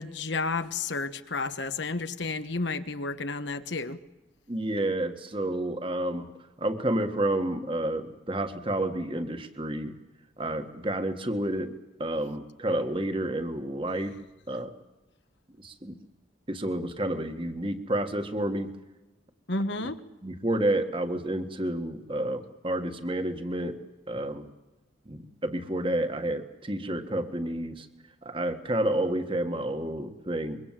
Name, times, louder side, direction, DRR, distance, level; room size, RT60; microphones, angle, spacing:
voice 1, 0.0-4.0 19.5-20.0, left 3 dB, 65° left, 9 dB, 1.3 m, -31 dB
voice 2, 4.5-6.3 6.6-9.9 10.4-11.7 12.0-14.1 14.5-14.7 15.6-16.0 16.5-18.7 19.8-19.9 20.2-23.8 24.1-24.5 25.0-27.9 28.2-30.6, right 1 dB, 25° right, 8 dB, 1.7 m, -30 dB
25.0 x 23.5 x 7.6 m, 1.1 s
head